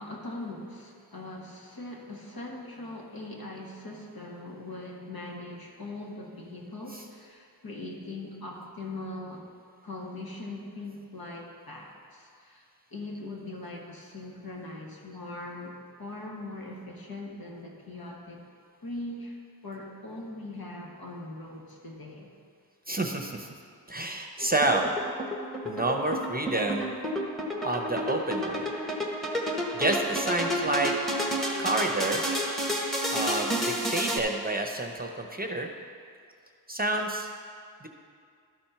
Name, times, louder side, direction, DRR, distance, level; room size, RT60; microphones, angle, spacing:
voice 1, 0.0-9.4 9.8-12.6 12.9-18.4 18.8-19.4 19.6-22.3 28.9-29.0, left 2 dB, 60° left, -2 dB, 1.6 m, -41 dB
voice 2, 22.9-23.5 23.9-24.9 25.6-26.9 27.6-28.7 29.7-30.9 31.6-32.3 33.1-35.7 36.7-37.3 37.8-37.9, right 2 dB, 20° right, 2 dB, 0.8 m, -29 dB
sound 1, 24.4-34.2, equal, ahead, 1.2 m, -31 dB
12.5 x 4.3 x 5.7 m, 2.3 s
wide cardioid pair, 50°, 40 cm